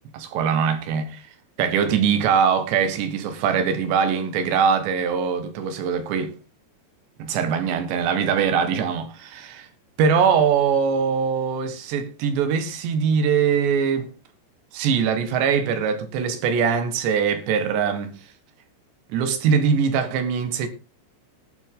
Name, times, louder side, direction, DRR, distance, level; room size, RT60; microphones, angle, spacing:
voice 1, 0.1-1.2 1.6-6.3 7.2-9.7 10.0-14.1 14.7-18.1 19.1-20.7, right 6 dB, 80° right, 3.8 m, -22 dB
18.0 x 7.8 x 3.9 m
omnidirectional pair, 5.1 m